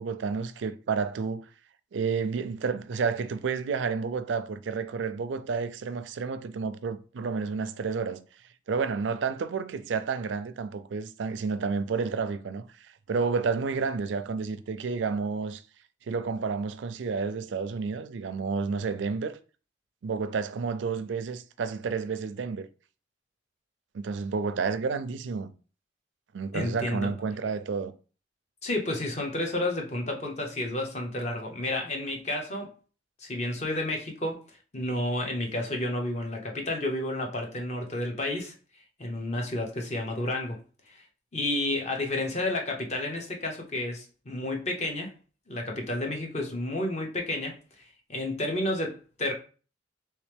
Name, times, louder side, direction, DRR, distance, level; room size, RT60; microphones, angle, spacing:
voice 1, 0.0-1.5 1.9-8.3 8.7-15.6 16.1-19.4 20.0-22.7 23.9-25.5 26.3-27.9, right 5 dB, 80° right, 0.4 m, -30 dB
voice 2, 26.5-27.1 28.6-32.7 33.2-34.4 34.7-38.5 39.0-40.6 40.9-41.0 41.3-45.1 45.5-47.6 48.1-49.3, left 1 dB, 35° left, 0.8 m, -31 dB
3.2 x 3.1 x 3.3 m
head